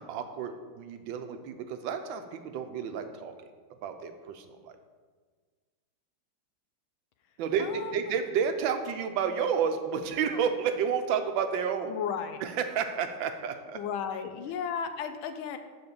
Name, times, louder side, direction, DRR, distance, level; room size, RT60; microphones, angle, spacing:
voice 1, 0.0-3.5 3.8-4.8 7.4-11.9 12.4-13.8, right 7 dB, 75° right, 7 dB, 1.3 m, -31 dB
voice 2, 7.6-8.1 11.9-12.4 13.7-15.6, left 7 dB, 80° left, 8 dB, 1.4 m, -34 dB
6.9 x 4.3 x 6.7 m, 1.5 s
omnidirectional pair, 2.2 m